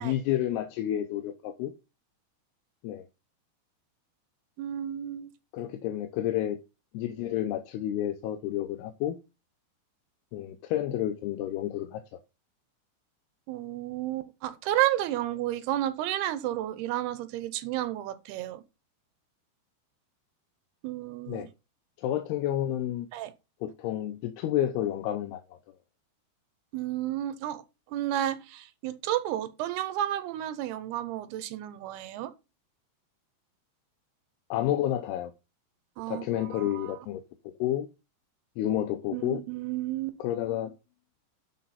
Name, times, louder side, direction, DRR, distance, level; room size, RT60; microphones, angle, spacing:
voice 1, 0.0-1.7 2.8-3.1 5.5-6.6 6.9-9.2 10.3-12.0 21.3-21.5 22.0-23.1 23.6-25.6 34.5-35.3 36.1-37.2 37.6-37.9 38.6-39.4 40.2-40.7, left 12 dB, 85° left, 2.7 m, -30 dB
voice 2, 4.6-5.3 13.5-18.6 20.8-21.4 23.1-23.3 26.7-27.6 27.9-32.3 36.0-37.1 39.1-40.2, right 13 dB, 80° right, 2.7 m, -32 dB
11.5 x 5.2 x 4.1 m
omnidirectional pair, 4.6 m